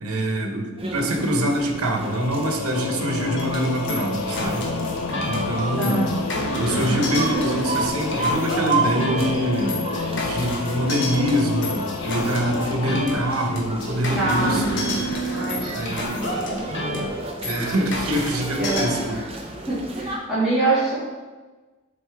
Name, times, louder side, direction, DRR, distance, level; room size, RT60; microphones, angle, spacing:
voice 1, 0.0-4.7 5.2-6.2 6.5-9.8 10.3-15.0 15.7-16.3 17.4-19.2, right 1 dB, 90° right, 2 dB, 1.0 m, -25 dB
sound 1, 0.8-20.2, right 2 dB, 25° right, 0.7 m, -32 dB
Singing / Musical instrument, 1.9-14.4, left 4 dB, 75° left, 0.4 m, -31 dB
sound 2, 3.4-18.9, equal, 55° left, 1.1 m, -29 dB
voice 2, 5.8-6.1 14.2-14.5 15.3-16.6 18.6-18.9 19.7-20.9, right 2 dB, ahead, -14 dB, 2.1 m, -25 dB
7.7 x 4.3 x 3.5 m, 1.3 s
head